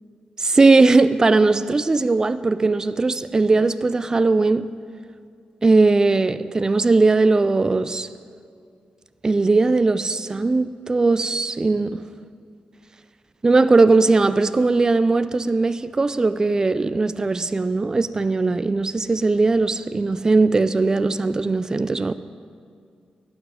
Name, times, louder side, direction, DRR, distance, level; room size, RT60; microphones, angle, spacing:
voice 1, 0.4-4.7 5.6-8.1 9.2-12.0 13.4-22.1, right 3 dB, 25° right, 0.3 m, -19 dB
12.0 x 6.2 x 8.9 m
wide cardioid pair, 115°, 3 cm